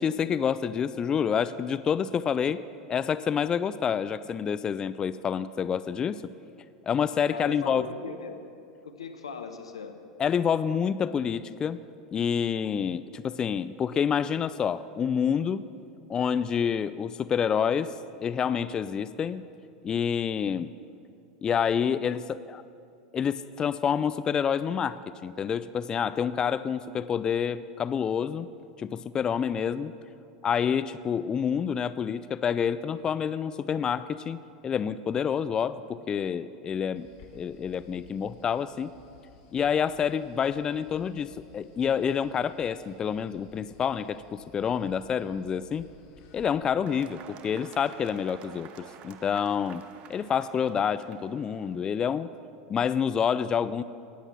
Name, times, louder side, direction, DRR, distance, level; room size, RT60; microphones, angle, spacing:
voice 1, 0.0-2.6 2.9-6.2 6.9-7.8 10.2-11.8 12.1-15.7 16.1-17.9 18.2-19.4 19.8-20.7 21.4-22.6 23.1-28.5 28.8-29.9 30.4-37.1 37.3-38.9 39.5-45.9 46.3-49.8 50.1-52.3 52.7-53.8, left 7 dB, 25° left, 15 dB, 0.4 m, -28 dB
voice 2, 7.3-8.4 8.8-10.0, left 5 dB, 85° left, 6 dB, 0.9 m, -39 dB
sound 1, 36.9-46.5, left 5 dB, 55° left, 1.6 m, -56 dB
sound 2, 46.8-52.0, right 8 dB, 45° right, 0.8 m, -50 dB
18.5 x 7.9 x 5.9 m, 2.5 s
hypercardioid pair, 90°, 3 cm